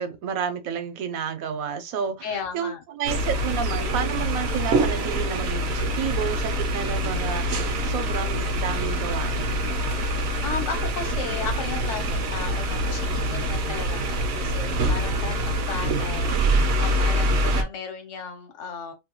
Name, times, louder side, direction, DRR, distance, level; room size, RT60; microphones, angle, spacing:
voice 1, 0.0-2.3 2.5-9.6, right 7 dB, 80° right, 1.1 m, -31 dB
voice 2, 2.2-2.8 10.0-18.9, left 5 dB, 65° left, 1.1 m, -35 dB
sound 1, 3.0-17.6, right 1 dB, 65° right, 0.7 m, -25 dB
2.6 x 2.2 x 2.8 m
omnidirectional pair, 1.5 m